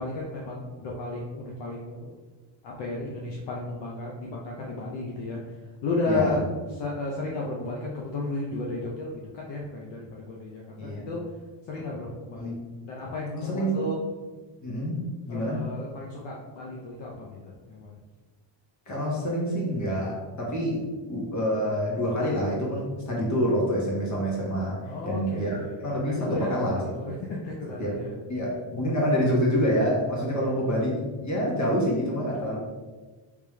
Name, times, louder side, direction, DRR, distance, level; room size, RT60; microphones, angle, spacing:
voice 1, 0.0-2.1 2.6-5.4 5.8-6.4 6.7-11.3 11.7-12.5 12.8-14.0 15.3-17.9 24.8-26.5 27.0-28.2 30.4-30.5, left 2 dB, 60° left, -2 dB, 0.8 m, -33 dB
voice 2, 6.1-6.4 10.8-11.1 12.3-12.6 13.3-13.9 14.6-15.0 15.3-15.7 18.9-20.8 21.1-26.8 27.8-28.0 28.3-32.6, equal, 35° left, -3 dB, 1.4 m, -27 dB
3.3 x 3.3 x 3.2 m, 1.3 s
cardioid pair, 105°, 48 cm